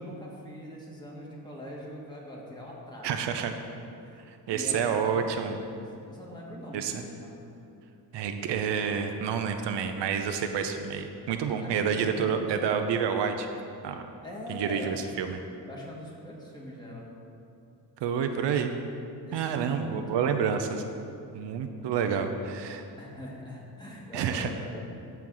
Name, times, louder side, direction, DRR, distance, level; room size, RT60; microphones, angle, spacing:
voice 1, 0.0-7.5 11.6-12.3 14.2-15.0 15.7-17.1 19.3-20.5 23.0-24.8, equal, 10° left, -4 dB, 1.7 m, -42 dB
voice 2, 3.0-3.5 4.3-5.6 6.7-6.9 8.1-13.5 13.8-14.1 14.5-15.4 18.0-18.7 19.3-20.8 21.3-22.8 24.1-24.5, right 7 dB, 80° right, 6 dB, 0.7 m, -29 dB
13.5 x 4.5 x 3.8 m, 2.6 s
cardioid pair, 115°, 41 cm